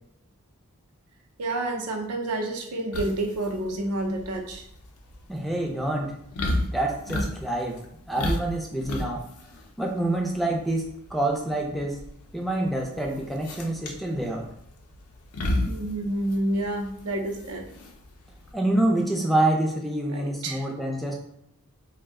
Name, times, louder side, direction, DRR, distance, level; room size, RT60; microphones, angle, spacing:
voice 1, 1.4-4.6 15.6-17.6 20.1-20.7, right 1 dB, 90° right, 2 dB, 0.5 m, -29 dB
sound 1, 2.9-18.5, left 1 dB, 90° left, 0.5 m, -33 dB
voice 2, 5.3-6.2 6.7-7.8 8.1-9.2 9.8-12.0 12.3-14.5 18.5-21.2, right 1 dB, ahead, 0 dB, 0.3 m, -27 dB
2.5 x 2.1 x 3.5 m, 0.75 s
head